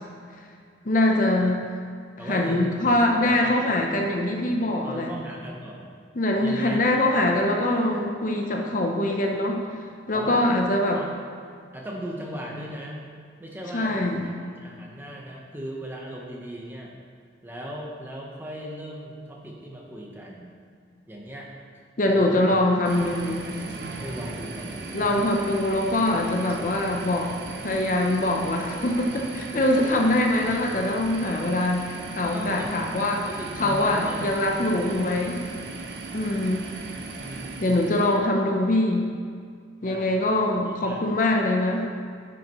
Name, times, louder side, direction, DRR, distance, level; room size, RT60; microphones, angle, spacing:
voice 1, 0.8-1.6 2.2-5.1 6.2-9.6 10.1-11.0 13.7-14.3 22.0-23.5 24.9-27.3 27.6-33.3 33.6-35.4 36.1-36.6 37.6-39.1 39.8-41.9, left 1 dB, 45° left, 2 dB, 0.6 m, -23 dB
voice 2, 2.2-2.9 3.2-4.1 4.8-5.9 6.4-7.1 10.1-10.5 10.9-11.1 11.7-13.0 13.4-14.0 14.2-14.3 14.6-16.9 17.4-20.5 21.1-21.5 22.1-22.6 23.1-23.5 24.0-25.3 32.3-32.8 33.3-34.4 37.2-38.1 39.8-40.2 40.6-41.0, equal, 10° right, -2 dB, 0.9 m, -38 dB
sound 1, 22.8-38.2, right 3 dB, 60° right, 0.6 m, -37 dB
9.6 x 6.2 x 3.0 m, 2.1 s
head